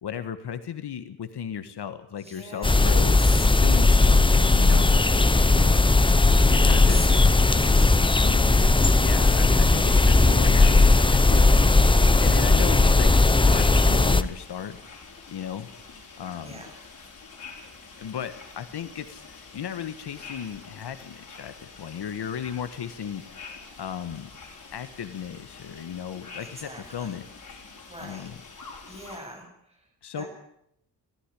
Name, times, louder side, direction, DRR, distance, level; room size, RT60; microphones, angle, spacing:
voice 1, 0.0-4.9 5.5-6.0 6.5-7.0 8.2-8.6 9.0-14.8 15.3-15.7 16.2-16.6 18.0-24.3 24.7-27.2 28.0-28.4 30.0-30.2, left 8 dB, 65° left, 10 dB, 1.5 m, -36 dB
voice 2, 2.2-3.4 6.6-8.0 16.4-16.8 18.1-18.2 26.4-27.1 27.9-28.3 28.9-30.3, equal, 15° right, 1 dB, 7.2 m, -42 dB
sound 1, 2.6-14.2, left 3 dB, 10° left, 0.7 m, -18 dB
sound 2, 9.6-29.2, left 4 dB, 45° left, 5.3 m, -46 dB
17.5 x 15.5 x 10.0 m, 0.76 s
wide cardioid pair, 140°, 42 cm